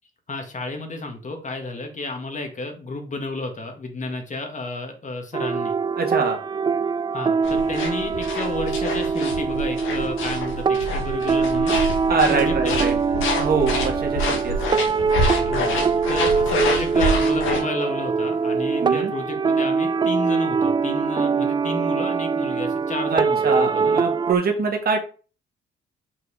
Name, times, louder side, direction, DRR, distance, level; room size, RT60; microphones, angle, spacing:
voice 1, 0.3-5.8 7.1-11.8 12.3-13.0 15.5-15.8 16.1-24.0, left 2 dB, 40° left, 4 dB, 2.0 m, -32 dB
sound 1, 5.3-24.3, right 5 dB, 25° right, 0.3 m, -23 dB
voice 2, 6.0-6.4 12.1-12.9 13.2-14.8 18.8-19.1 23.1-25.0, right 4 dB, 50° right, 3 dB, 1.8 m, -24 dB
sound 2, 7.4-17.6, left 1 dB, 90° left, 2.3 m, -27 dB
6.0 x 4.8 x 4.8 m, 0.37 s
cardioid pair, 90°, 20 cm